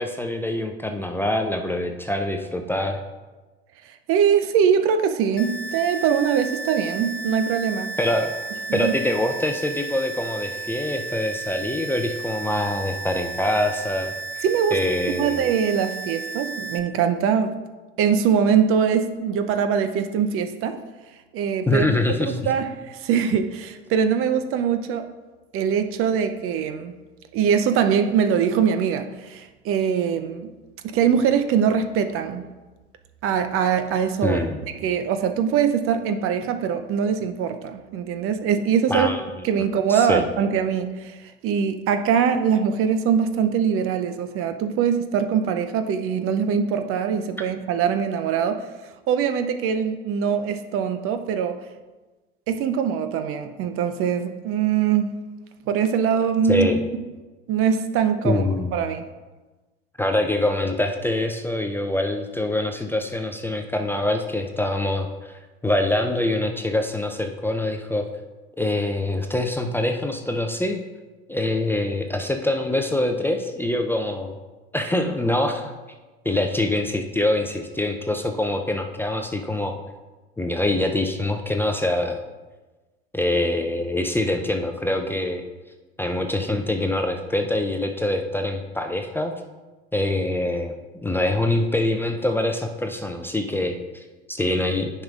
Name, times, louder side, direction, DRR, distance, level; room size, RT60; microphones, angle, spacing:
voice 1, 0.0-3.0 8.0-8.3 8.7-14.4 14.7-15.4 21.7-22.4 34.2-34.6 38.9-39.2 39.9-40.2 56.5-56.8 58.2-58.7 60.0-68.1 68.6-70.8 71.3-74.4 74.7-75.7 76.2-79.7 80.4-82.2 83.1-85.4 86.0-89.3 89.9-94.0 94.3-94.9, left 1 dB, 5° left, 4 dB, 0.5 m, -24 dB
voice 2, 4.1-7.9 8.7-8.9 14.4-14.8 15.1-17.5 18.0-20.8 21.3-21.9 22.3-25.1 25.5-26.9 27.3-30.5 30.8-32.4 33.2-34.4 34.8-39.1 39.4-41.2 41.4-48.7 49.1-51.6 52.5-55.1 55.7-56.7 57.5-58.4 58.7-59.0, right 7 dB, 45° right, 8 dB, 0.6 m, -22 dB
sound 1, 5.4-16.8, right 4 dB, 90° left, 0.7 m, -33 dB
10.0 x 5.5 x 2.4 m, 1.2 s
hypercardioid pair, 75°, 31 cm